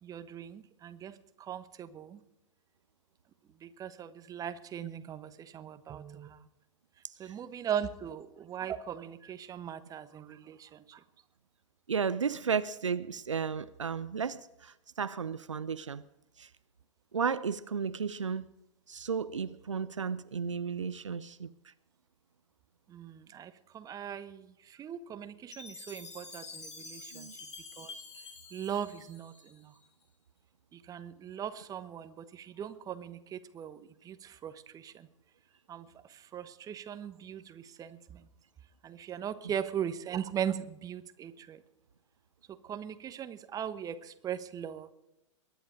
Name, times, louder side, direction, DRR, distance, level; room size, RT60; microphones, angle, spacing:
voice 1, 0.0-2.2 3.6-6.4 7.2-11.0 22.9-27.4 27.8-27.9 28.5-29.7 30.7-35.1 35.7-38.2 38.8-41.6 42.5-44.9, right 9 dB, 25° right, 1.1 m, -39 dB
voice 2, 11.9-16.0 16.4-16.5 17.1-18.5 18.9-21.5 27.1-27.3, right 6 dB, 80° right, 0.7 m, -33 dB
Chime, 25.5-29.8, left 4 dB, 70° left, 3.7 m, -48 dB
22.0 x 10.5 x 5.2 m
figure-of-eight pair, 95°, 16 cm